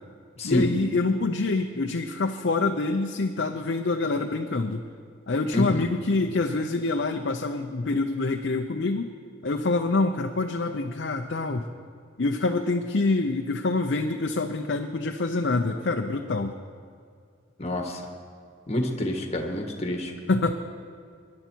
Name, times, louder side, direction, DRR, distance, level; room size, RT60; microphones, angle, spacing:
voice 1, 0.4-4.8 5.3-9.1 9.4-11.7 12.2-16.5 20.3-20.5, left 3 dB, 60° left, 4 dB, 0.6 m, -26 dB
voice 2, 5.5-5.9 17.6-18.0 18.7-20.1, left 1 dB, 35° left, 4 dB, 1.5 m, -27 dB
22.5 x 10.5 x 4.5 m, 2.3 s
head